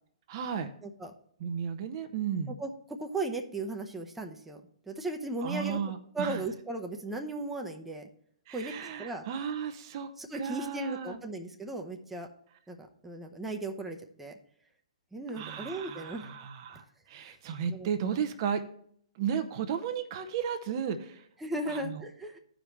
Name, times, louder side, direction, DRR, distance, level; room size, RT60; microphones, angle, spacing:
voice 1, 0.3-0.7 1.4-2.6 5.4-6.4 8.5-11.2 15.3-16.8 17.1-18.6 19.2-21.2 21.7-22.0, right 7 dB, 45° right, 8 dB, 0.7 m, -34 dB
voice 2, 2.5-4.6 4.9-5.8 6.1-8.0 8.5-8.7 9.0-9.2 10.2-12.3 12.7-14.3 15.1-16.3 17.2-17.3 17.7-17.9 21.4-22.4, right 2 dB, 5° right, 2 dB, 0.8 m, -36 dB
14.5 x 5.0 x 3.1 m, 0.65 s
figure-of-eight pair, 120°, 3 cm